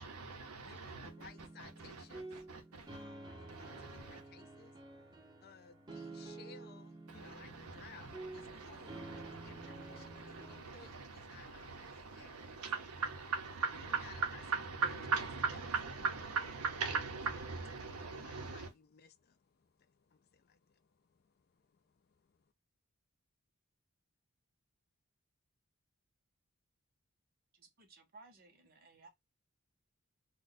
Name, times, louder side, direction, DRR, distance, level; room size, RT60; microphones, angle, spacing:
voice 1, 0.0-3.0 3.5-4.2 7.1-18.7, right 5 dB, 85° right, 0.8 m, -40 dB
voice 2, 0.6-2.3 2.9-12.6 14.0-14.4 18.0-22.5, left 6 dB, 45° left, 0.3 m, -60 dB
sound 1, 1.0-10.6, right 2 dB, 20° right, 0.6 m, -50 dB
voice 3, 27.5-29.1, right 3 dB, 45° right, 0.8 m, -59 dB
2.6 x 2.2 x 3.9 m
head